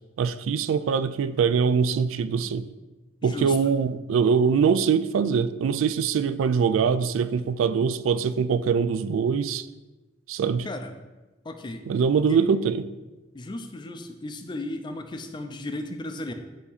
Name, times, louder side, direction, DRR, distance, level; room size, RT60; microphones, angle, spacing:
voice 1, 0.2-2.7 3.2-9.7 10.3-10.7 11.9-12.8, right 6 dB, 85° right, 0.3 m, -23 dB
voice 2, 3.2-3.7 10.6-11.0 11.4-11.8 12.3-12.4 13.3-16.3, left 2 dB, 25° left, 0.4 m, -35 dB
8.3 x 2.8 x 4.0 m
head